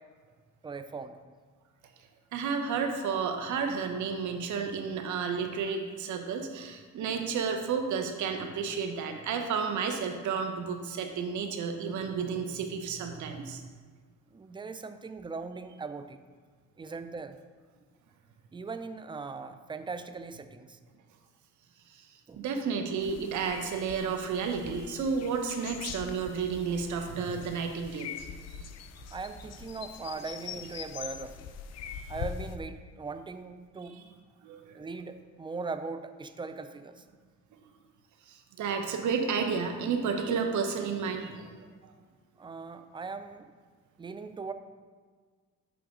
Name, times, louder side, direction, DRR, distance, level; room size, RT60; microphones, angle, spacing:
voice 1, 0.6-1.2 14.3-16.2 16.8-17.4 18.5-20.8 22.3-22.4 29.1-31.5 32.1-34.0 34.7-37.0 42.4-43.5 44.0-44.5, right 4 dB, 15° right, 9 dB, 0.4 m, -39 dB
voice 2, 2.3-13.6 21.9-22.1 22.4-28.1 34.4-34.8 38.3-41.7, right 5 dB, 75° right, 4 dB, 0.9 m, -32 dB
sound 1, 23.0-32.6, left 7 dB, 60° left, 0.5 m, -43 dB
7.0 x 3.4 x 5.0 m, 1.5 s
cardioid pair, 90°, 30 cm